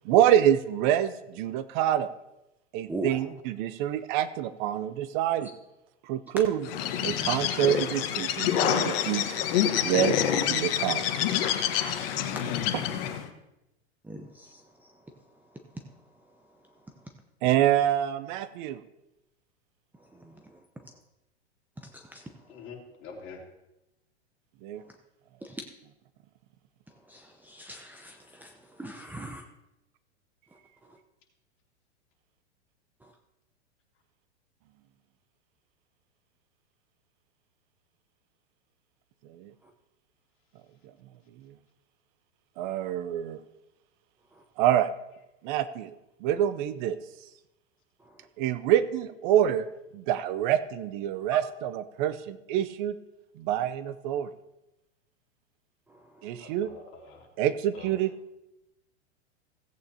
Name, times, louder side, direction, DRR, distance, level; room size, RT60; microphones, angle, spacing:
voice 1, 0.1-2.1 2.7-5.5 6.1-6.7 7.0-9.5 9.8-10.1 10.6-11.0 12.7-12.8 17.4-18.8 24.6-24.8 39.4-39.5 42.6-43.4 44.6-44.9 45.4-45.9 46.2-47.0 48.4-49.7 49.9-52.9 53.4-54.3 56.2-56.7 57.4-58.1, right 11 dB, 45° right, 13 dB, 0.6 m, -26 dB
voice 2, 2.9-3.2 12.3-12.6 14.1-14.6 20.2-20.4 21.9-22.2 25.4-25.6 27.1-28.5 28.8-29.4, right 1 dB, 5° right, 4 dB, 0.7 m, -40 dB
Bird, 6.6-13.3, left 10 dB, 55° left, 1.4 m, -27 dB
voice 3, 22.5-23.4 56.4-57.3 57.7-58.0, left 4 dB, 35° left, 0 dB, 3.1 m, -45 dB
17.0 x 8.7 x 2.8 m, 0.92 s
hypercardioid pair, 110°, 35 cm